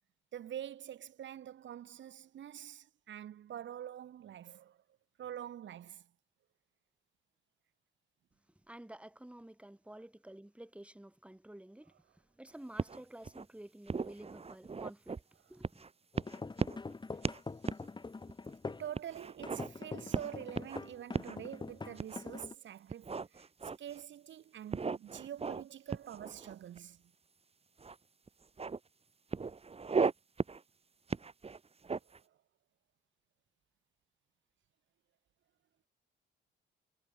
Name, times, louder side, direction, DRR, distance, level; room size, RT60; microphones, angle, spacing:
voice 1, 0.3-4.8 5.2-6.1 17.1-17.3 18.7-27.0 32.0-32.2, right 10 dB, 70° right, 7.4 m, -46 dB
voice 2, 8.7-11.9 12.4-15.2 15.5-15.9, right 1 dB, 5° right, 5.1 m, -51 dB
sound 1, 12.8-13.5 13.9-15.2 15.6-15.9 16.2-16.9 17.2-17.4 17.7-17.9 18.3-18.4 19.0-19.7 20.1-20.8 21.1-21.4 22.0-22.5 22.9-24.0 24.7-25.6 25.9-26.8 27.8-28.0 28.3-28.8 29.3-30.1 30.4-30.6 31.1-32.2, right 4 dB, 30° right, 3.3 m, -36 dB
sound 2, 16.1-18.9 19.4-22.5, left 3 dB, 20° left, 2.2 m, -44 dB
cardioid pair, 90°, 20 cm